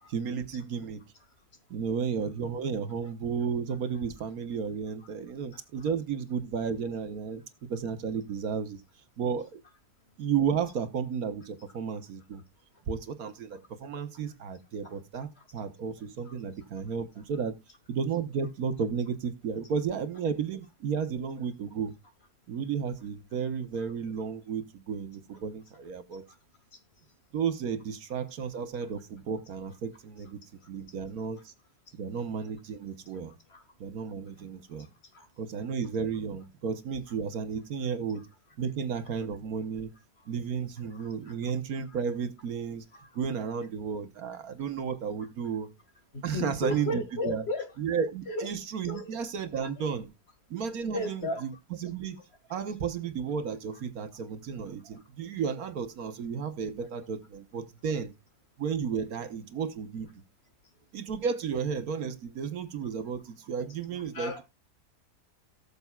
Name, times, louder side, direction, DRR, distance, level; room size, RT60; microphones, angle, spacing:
voice 1, 0.1-1.0 1.7-8.8 9.2-9.6 10.2-12.4 12.9-17.5 17.9-21.9 22.5-26.2 27.3-30.4 30.7-31.5 31.9-33.3 33.8-34.9 35.4-38.3 38.6-39.9 40.3-42.9 43.1-45.7 46.2-47.5 47.8-50.1 50.5-51.5 51.8-52.2 52.5-58.1 58.6-60.1 60.9-64.4, right 6 dB, 70° right, 1.4 m, -33 dB
voice 2, 40.9-41.3 42.9-43.1 46.1-47.7 48.3-48.5 48.8-49.1 49.6-49.7 50.9-51.4 64.1-64.4, left 2 dB, 40° left, 2.2 m, -35 dB
18.0 x 6.9 x 2.3 m
omnidirectional pair, 1.7 m